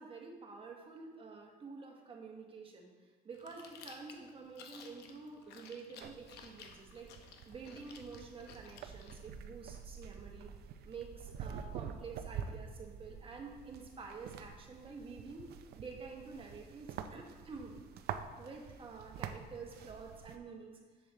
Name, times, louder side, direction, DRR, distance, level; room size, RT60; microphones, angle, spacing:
voice 1, 0.0-2.9 3.2-10.5 10.8-15.5 15.8-17.8 18.4-20.8, right 4 dB, 30° right, 1 dB, 1.4 m, -49 dB
Chewing mastication, 3.3-9.2, left 6 dB, 85° left, 0.8 m, -56 dB
sound 1, 6.0-20.4, right 7 dB, 70° right, 0.5 m, -47 dB
7.3 x 6.9 x 3.7 m, 1.5 s
cardioid pair, 110°, 17 cm